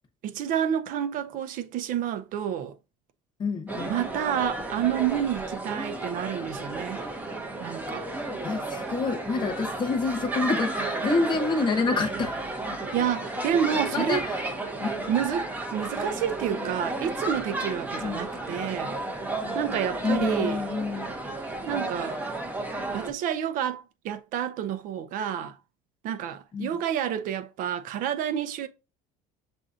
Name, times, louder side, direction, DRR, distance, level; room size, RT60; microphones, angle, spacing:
voice 1, 0.2-2.7 3.9-7.0 7.6-8.1 12.9-14.3 15.1-19.0 19.5-20.6 21.7-22.2 22.9-25.5 26.0-28.7, right 9 dB, 55° right, 0.5 m, -29 dB
voice 2, 3.4-4.0 8.4-12.4 13.7-14.5 14.8-14.9 18.0-18.3 20.0-21.1 26.5-26.8, left 4 dB, 30° left, 1.0 m, -28 dB
sound 1, 3.7-23.1, right 2 dB, 10° right, 0.7 m, -33 dB
7.3 x 2.6 x 2.4 m
cardioid pair, 140°, 16 cm